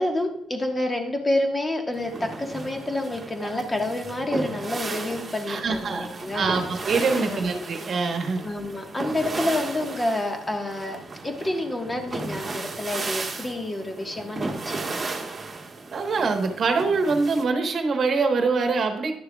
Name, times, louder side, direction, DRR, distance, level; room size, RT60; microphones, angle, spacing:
voice 1, 0.0-6.6 7.2-7.4 8.4-15.0, left 1 dB, 20° left, 4 dB, 1.3 m, -28 dB
sound 1, 1.9-17.4, right 3 dB, 30° right, 1.3 m, -35 dB
voice 2, 5.5-8.4 15.9-19.1, right 4 dB, 50° right, 5 dB, 1.2 m, -24 dB
11.0 x 6.6 x 2.3 m, 0.79 s
cardioid pair, 90°, 0 cm